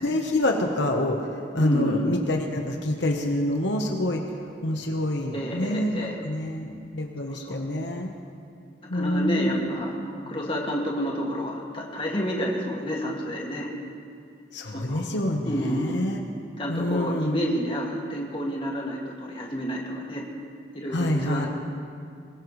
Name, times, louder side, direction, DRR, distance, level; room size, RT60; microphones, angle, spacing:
voice 1, 0.0-1.3 1.5-4.2 4.6-8.1 8.9-9.8 14.5-16.2 16.7-17.4 20.9-21.5, left 1 dB, 75° left, 2 dB, 1.1 m, -26 dB
voice 2, 1.6-2.1 5.3-6.2 7.3-7.5 8.9-13.7 14.7-15.1 15.5-16.0 16.6-20.3 20.7-21.5, equal, 30° left, -2 dB, 2.1 m, -29 dB
22.5 x 20.0 x 3.2 m, 2.4 s
head